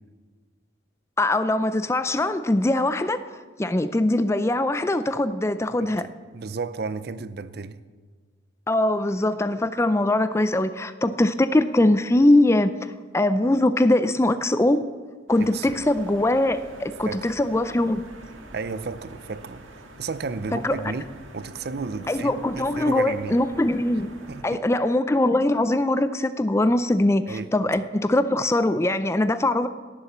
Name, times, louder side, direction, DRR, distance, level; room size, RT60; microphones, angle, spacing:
voice 1, 1.2-3.2 3.6-6.1 8.7-12.7 13.1-14.8 15.3-18.0 20.5-20.8 22.1-24.1 24.4-29.7, left 1 dB, 15° left, 0.4 m, -22 dB
voice 2, 5.8-7.8 15.4-15.8 17.0-17.3 18.5-23.4 24.3-24.6 27.3-27.5, right 4 dB, 50° right, 0.5 m, -33 dB
sound 1, 15.3-24.4, right 1 dB, 85° right, 2.0 m, -45 dB
17.5 x 7.3 x 7.2 m
head